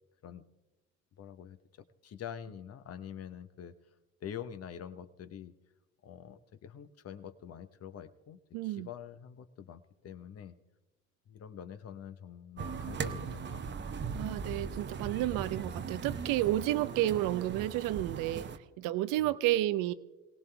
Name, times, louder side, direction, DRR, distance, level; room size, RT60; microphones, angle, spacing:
voice 1, 1.2-1.6 2.0-3.7 4.2-5.5 6.0-10.6 11.3-13.9 19.2-19.3, left 9 dB, 40° left, 11 dB, 0.9 m, -46 dB
voice 2, 8.5-8.9 14.2-19.9, right 15 dB, 60° right, 17 dB, 0.6 m, -31 dB
sound 1, 12.6-18.6, right 5 dB, 30° right, 0.8 m, -39 dB
26.0 x 18.0 x 2.3 m, 1.1 s
hypercardioid pair, 55°, 36 cm